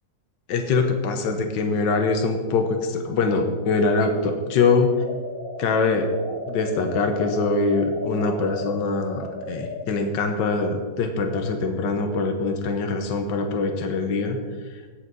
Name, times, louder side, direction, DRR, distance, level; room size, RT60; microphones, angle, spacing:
voice 1, 0.5-4.9 5.6-6.1 6.5-14.4, left 4 dB, 75° left, 5 dB, 1.7 m, -23 dB
sound 1, 5.0-9.9, left 1 dB, 50° left, 1.6 m, -35 dB
17.0 x 6.5 x 4.0 m, 1.4 s
omnidirectional pair, 2.0 m